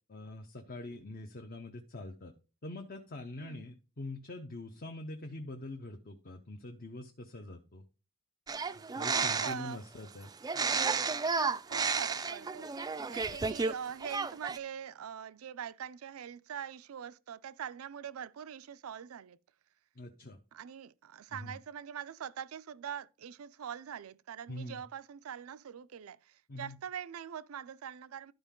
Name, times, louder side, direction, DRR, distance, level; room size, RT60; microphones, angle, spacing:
voice 1, 0.1-2.3 2.6-7.8 8.7-10.3 20.0-20.4 21.3-21.6 24.5-24.8 26.5-26.8, left 2 dB, 45° left, 0.8 m, -44 dB
sound 1, 8.5-9.7 10.4-13.7 14.0-14.6, right 5 dB, 20° right, 0.3 m, -32 dB
voice 2, 9.2-9.8 11.4-12.7 13.1-19.4 20.5-28.3, right 8 dB, 85° right, 0.4 m, -43 dB
12.0 x 4.5 x 3.7 m
head